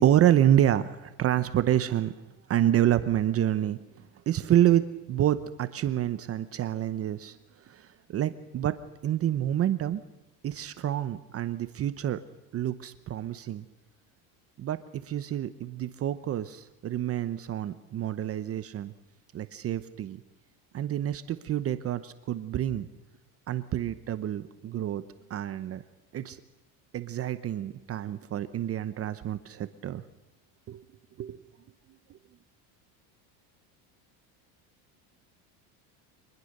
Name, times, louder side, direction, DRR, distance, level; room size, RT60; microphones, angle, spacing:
voice 1, 0.0-2.2 2.5-7.4 7.6-8.8 9.0-10.0 10.4-12.2 12.5-13.6 14.6-18.9 19.3-20.2 20.7-22.9 23.5-25.0 25.3-25.8 26.1-26.4 26.9-30.0 30.7-30.8 31.2-31.4 32.1-32.2, right 11 dB, 35° right, 12 dB, 0.8 m, -28 dB
25.0 x 20.0 x 6.6 m, 1.0 s
cardioid pair, 140°, 43 cm